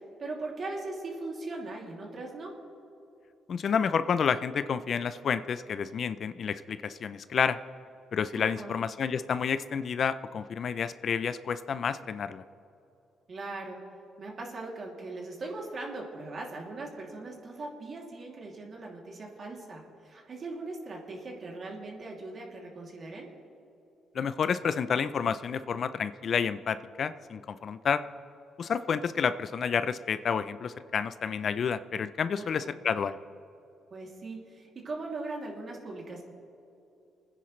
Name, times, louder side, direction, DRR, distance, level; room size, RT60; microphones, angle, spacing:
voice 1, 0.2-2.5 8.4-8.8 13.3-13.8 14.2-23.3 32.4-32.8 33.9-36.2, right 2 dB, 45° right, -1 dB, 2.7 m, -39 dB
voice 2, 3.5-7.6 8.1-12.4 24.1-28.0 28.6-33.2, left 6 dB, 55° left, 13 dB, 0.4 m, -30 dB
30.0 x 10.0 x 3.2 m, 2.7 s
cardioid pair, 90°, 0 cm